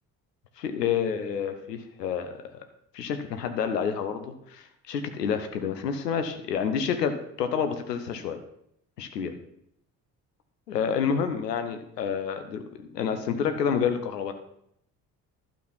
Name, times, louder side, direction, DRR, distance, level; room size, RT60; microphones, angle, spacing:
voice 1, 0.6-2.4 2.9-8.4 9.0-9.3 10.7-12.6 12.9-14.3, left 7 dB, 80° left, 8 dB, 1.0 m, -29 dB
11.5 x 6.6 x 5.7 m, 0.74 s
figure-of-eight pair, 45°, 48 cm